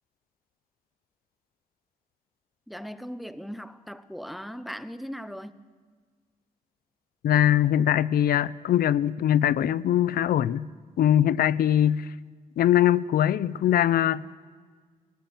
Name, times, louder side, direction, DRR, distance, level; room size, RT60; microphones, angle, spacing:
voice 1, 2.7-5.6, equal, ahead, 0.7 m, -38 dB
voice 2, 7.2-10.7 11.0-12.1 12.6-14.4, left 11 dB, 85° left, 0.6 m, -22 dB
26.5 x 18.5 x 7.4 m
wide cardioid pair, 170°, 15 cm